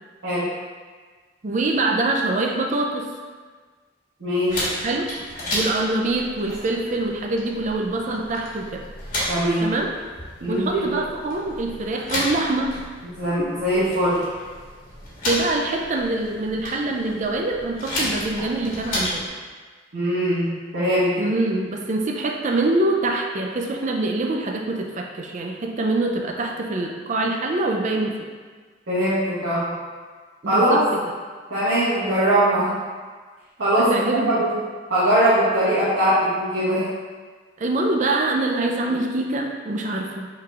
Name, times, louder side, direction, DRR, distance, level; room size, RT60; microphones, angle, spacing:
voice 1, 1.4-3.1 4.8-5.1 5.5-8.9 9.6-9.9 10.5-12.8 15.2-19.2 21.2-28.2 30.4-31.0 33.8-34.6 37.6-40.3, right 2 dB, 40° right, 2 dB, 0.4 m, -24 dB
voice 2, 4.2-4.8 9.3-9.7 10.4-11.0 13.1-14.2 19.9-21.1 28.9-29.7 30.4-30.8 31.5-32.7 33.6-33.9 34.3-34.5 34.9-36.9, right 1 dB, 85° right, -13 dB, 1.5 m, -21 dB
sound 1, 4.5-19.3, left 1 dB, 50° left, 1.4 m, -32 dB
5.5 x 3.8 x 2.4 m, 1.5 s
head